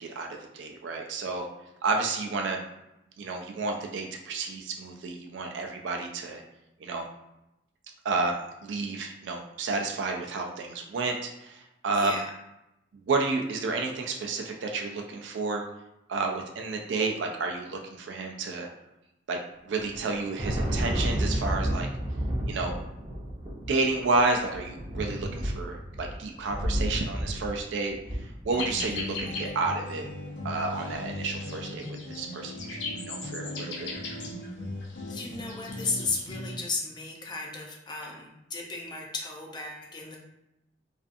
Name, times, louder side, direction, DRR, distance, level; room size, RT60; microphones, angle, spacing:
voice 1, 0.0-1.5 1.8-2.6 3.2-6.4 6.8-7.1 8.0-12.2 13.0-15.6 16.1-18.7 19.3-19.4 19.6-21.9 22.5-22.7 23.7-30.1 30.4-33.9, right 3 dB, 75° right, 2 dB, 0.3 m, -31 dB
voice 2, 11.9-12.3 35.1-40.2, left 3 dB, 25° left, 0 dB, 0.4 m, -34 dB
Thunder, 19.8-29.2, equal, 30° right, 0.5 m, -31 dB
sound 1, 28.5-36.6, left 2 dB, 85° left, 0.7 m, -37 dB
2.5 x 2.3 x 2.5 m, 0.88 s
head